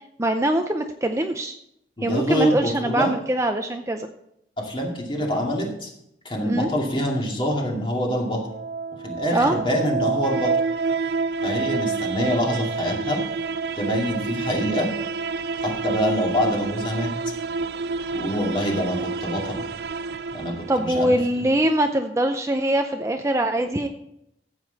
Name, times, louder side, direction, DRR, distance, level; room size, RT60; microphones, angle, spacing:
voice 1, 0.2-1.6 2.0-4.1 6.4-6.7 9.3-9.6 20.7-23.9, right 1 dB, 15° right, 5 dB, 0.5 m, -23 dB
voice 2, 2.0-3.1 4.6-5.9 6.2-8.4 9.0-10.6 11.4-13.2 13.8-14.9 15.6-17.1 18.1-19.6 20.3-21.1, equal, 30° left, 0 dB, 2.4 m, -25 dB
sound 1, 8.3-21.3, right 4 dB, 65° right, 0.4 m, -28 dB
14.5 x 8.2 x 4.0 m, 0.77 s
head